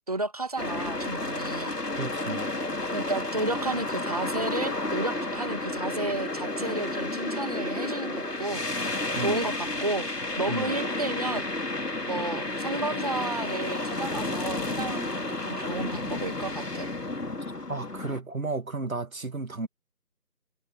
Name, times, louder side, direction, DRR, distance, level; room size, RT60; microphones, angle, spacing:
voice 1, 0.1-1.7 2.9-8.6 9.2-10.1 10.4-11.4 12.1-16.9, right 2 dB, 25° right, 1.5 m, -32 dB
sound 1, 0.6-18.2, left 2 dB, 80° left, 2.7 m, -31 dB
voice 2, 2.0-2.5 9.2-9.4 10.5-10.7 17.7-19.7, right 3 dB, 60° right, 2.0 m, -33 dB
figure-of-eight pair, 165°, 46 cm